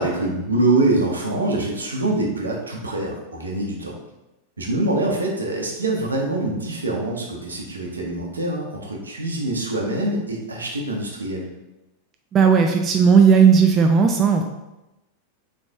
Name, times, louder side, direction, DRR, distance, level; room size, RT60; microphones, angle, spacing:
voice 1, 0.0-4.0 4.6-11.5, right 2 dB, 75° right, -1 dB, 0.9 m, -24 dB
voice 2, 12.3-14.4, right 6 dB, 30° right, 3 dB, 0.4 m, -15 dB
4.0 x 3.4 x 3.4 m, 0.97 s
figure-of-eight pair, 90°, 0 cm